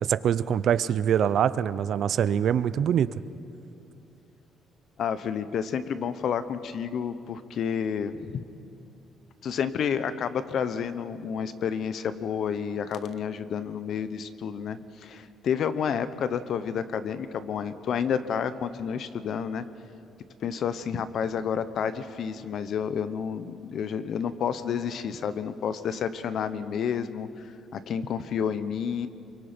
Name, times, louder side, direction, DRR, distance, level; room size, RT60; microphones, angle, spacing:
voice 1, 0.0-3.1, right 9 dB, 55° right, 16 dB, 0.5 m, -24 dB
voice 2, 5.0-8.4 9.4-19.7 20.4-27.3 27.7-29.1, left 7 dB, 55° left, 12 dB, 0.9 m, -30 dB
27.5 x 23.5 x 5.2 m, 2.7 s
cardioid pair, 150°, 0 cm